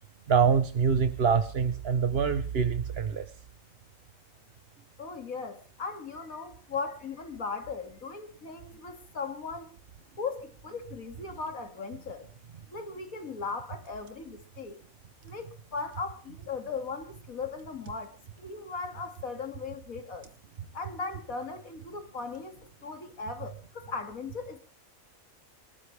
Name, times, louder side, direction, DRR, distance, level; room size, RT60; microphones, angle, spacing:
voice 1, 0.3-3.3, right 6 dB, 50° right, 1.1 m, -25 dB
voice 2, 5.0-9.7 10.2-12.3 12.7-14.8 15.2-20.3 20.7-24.6, left 4 dB, 90° left, 2.8 m, -38 dB
28.0 x 13.0 x 3.4 m
omnidirectional pair, 1.4 m